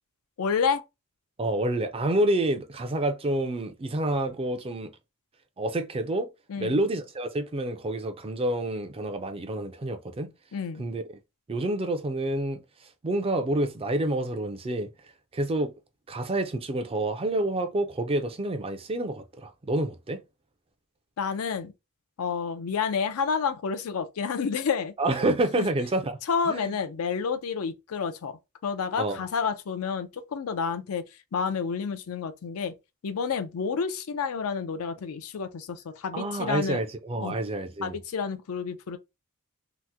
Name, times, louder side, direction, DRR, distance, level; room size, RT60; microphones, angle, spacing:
voice 1, 0.4-0.8 6.5-6.8 10.5-10.8 21.2-21.7 22.2-24.9 25.6-25.7 26.3-31.0 31.3-32.7 33.0-36.8 37.2-37.4 37.8-39.0, left 6 dB, 70° left, 0.4 m, -29 dB
voice 2, 1.4-5.0 5.6-6.3 6.6-10.3 10.8-11.0 11.5-15.7 16.1-20.2 25.0-26.2 26.5-26.8 29.0-29.2 36.1-38.0, right 1 dB, 25° right, 0.4 m, -28 dB
2.9 x 2.1 x 3.3 m
head